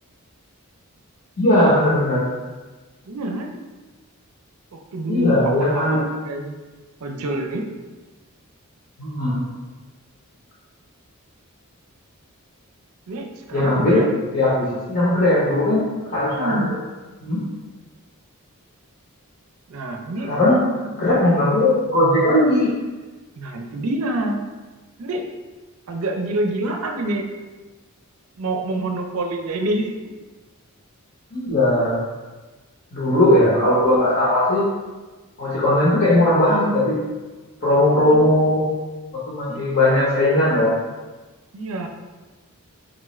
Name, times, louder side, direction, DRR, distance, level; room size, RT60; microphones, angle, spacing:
voice 1, 1.4-2.2 5.1-6.0 9.0-9.4 13.5-14.0 14.3-15.8 16.1-16.6 17.2-17.4 20.3-20.6 21.0-22.7 31.3-32.0 32.9-34.6 35.4-37.0 37.6-38.6 39.1-40.7, left 1 dB, 50° left, -8 dB, 0.7 m, -18 dB
voice 2, 3.1-3.5 4.7-6.6 7.0-7.6 13.1-14.1 16.3-16.8 19.7-20.3 20.9-21.0 23.4-24.4 25.0-25.3 25.9-27.3 28.4-29.9 38.1-38.3 39.5-40.0 41.5-41.9, right 2 dB, 75° right, 3 dB, 0.5 m, -27 dB
3.9 x 2.3 x 3.1 m, 1.2 s
head